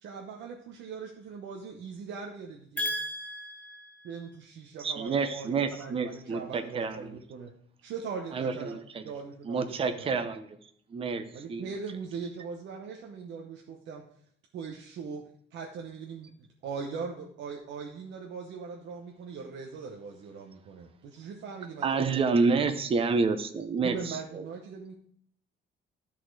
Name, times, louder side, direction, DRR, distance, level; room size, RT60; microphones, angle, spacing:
voice 1, 0.0-2.9 4.0-7.5 7.8-8.8 9.0-10.3 11.3-14.0 14.5-15.2 15.5-22.2 23.8-24.9, right 5 dB, 65° right, 0.9 m, -40 dB
voice 2, 2.8-4.3, left 1 dB, 5° left, 1.0 m, -35 dB
voice 3, 4.8-7.1 8.3-9.0 9.5-10.5 10.9-11.7 21.8-24.5, right 4 dB, 30° right, 0.7 m, -29 dB
12.5 x 4.2 x 4.6 m
cardioid pair, 175°, 20 cm